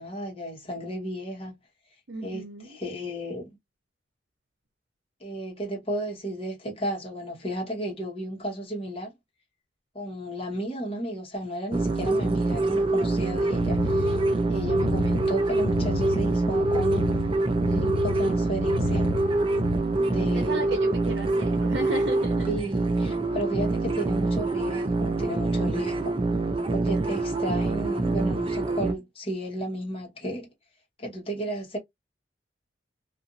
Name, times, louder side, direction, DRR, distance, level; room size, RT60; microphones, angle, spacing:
voice 1, 0.0-1.6 2.2-2.4 2.7-3.5 5.2-9.1 9.9-14.2 14.5-17.1 17.6-19.2 20.0-20.7 22.5-26.2 26.7-30.5 31.0-31.8, right 1 dB, 35° left, 1.2 m, -33 dB
voice 2, 2.1-2.8 14.7-15.0 19.8-22.5, right 2 dB, 75° right, 0.7 m, -35 dB
sound 1, 11.7-28.9, right 2 dB, 30° right, 0.4 m, -25 dB
sound 2, 13.4-19.8, left 4 dB, 80° left, 0.4 m, -32 dB
2.6 x 2.5 x 2.5 m
head